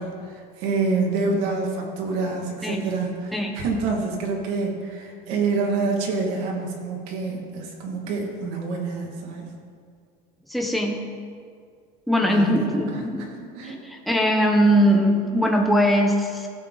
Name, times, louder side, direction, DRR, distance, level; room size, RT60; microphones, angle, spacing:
voice 1, 0.0-9.5 12.2-13.0 13.3-13.8, right 3 dB, 75° right, 0 dB, 2.3 m, -27 dB
voice 2, 10.5-11.0 12.1-13.3 13.6-13.7 14.1-16.5, equal, ahead, 1 dB, 1.0 m, -20 dB
16.0 x 7.4 x 4.1 m, 2.2 s
cardioid pair, 150°, 20 cm